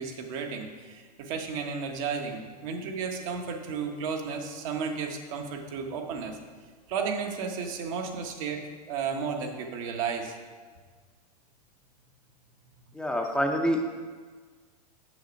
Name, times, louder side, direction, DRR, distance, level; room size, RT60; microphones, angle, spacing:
voice 1, 0.0-6.4 6.9-10.4 12.7-12.9, right 5 dB, 55° right, 3 dB, 1.2 m, -33 dB
voice 2, 12.9-13.8, equal, 5° left, 2 dB, 0.6 m, -26 dB
6.7 x 6.4 x 5.1 m, 1.5 s
hypercardioid pair, 115°, 21 cm